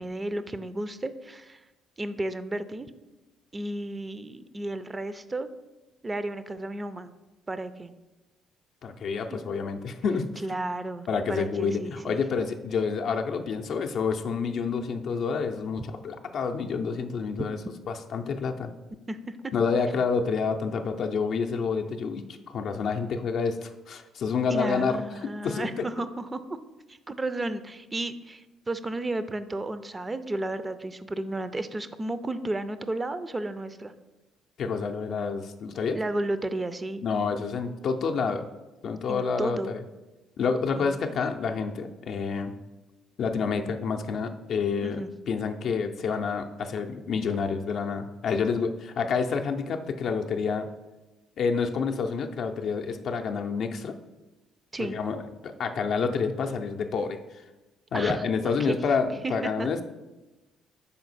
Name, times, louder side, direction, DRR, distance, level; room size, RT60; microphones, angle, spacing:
voice 1, 0.0-1.6 2.0-2.9 3.5-5.5 6.0-7.1 7.5-7.9 9.3-9.4 10.4-12.2 15.8-15.9 19.1-19.4 24.5-26.6 26.9-33.9 35.9-37.0 39.1-39.7 40.8-41.0 44.8-45.1 54.7-55.0 57.9-58.3 58.6-58.8 59.2-59.7, right 2 dB, 25° right, 12 dB, 0.4 m, -33 dB
voice 2, 8.8-10.6 11.1-17.6 17.9-18.7 19.5-25.0 25.4-25.7 34.6-36.0 37.0-38.5 38.8-39.8 40.4-42.5 43.2-50.7 51.4-53.9 54.8-55.2 55.4-57.2 57.9-59.8, left 5 dB, 60° left, 5 dB, 0.5 m, -28 dB
5.6 x 4.2 x 4.0 m, 1.1 s
hypercardioid pair, 50°, 0 cm